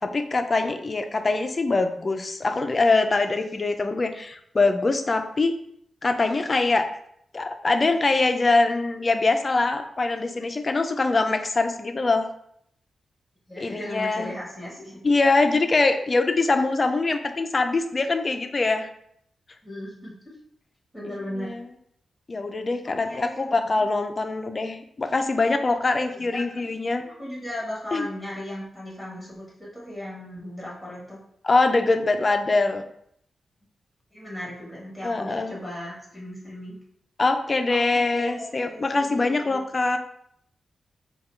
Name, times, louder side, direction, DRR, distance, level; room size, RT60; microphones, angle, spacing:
voice 1, 0.0-5.5 6.0-6.9 7.3-12.3 13.6-14.3 15.0-18.9 21.4-21.7 22.3-27.0 27.9-28.1 31.4-32.8 35.0-35.6 37.2-40.0, left 3 dB, 30° left, 6 dB, 0.4 m, -23 dB
voice 2, 13.5-15.0 19.6-20.1 20.9-21.6 22.8-23.7 26.1-26.7 27.0-31.2 34.1-36.8 37.7-39.6, left 1 dB, 5° right, -5 dB, 1.4 m, -37 dB
4.8 x 2.3 x 4.3 m, 0.70 s
wide cardioid pair, 140°, 0 cm